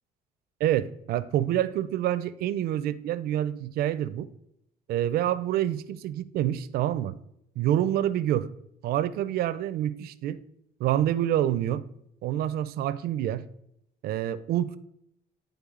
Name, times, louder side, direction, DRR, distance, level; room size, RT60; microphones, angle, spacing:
voice 1, 0.6-4.3 4.9-7.1 7.6-8.5 8.8-10.4 10.8-11.8 12.2-13.4 14.0-14.8, right 12 dB, 65° right, 15 dB, 0.4 m, -27 dB
9.3 x 3.4 x 3.7 m, 0.78 s
cardioid pair, 110°, 17 cm